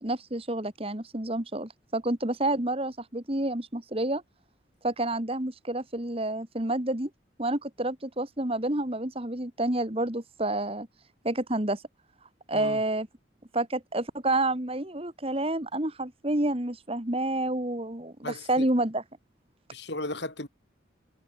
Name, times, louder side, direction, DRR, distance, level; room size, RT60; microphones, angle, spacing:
voice 1, 0.0-4.2 4.8-7.1 7.4-10.9 11.2-11.8 12.5-13.1 13.5-19.0, right 1 dB, 30° right, 2.0 m, -29 dB
voice 2, 18.2-18.7 19.7-20.5, left 2 dB, 60° left, 5.7 m, -36 dB
head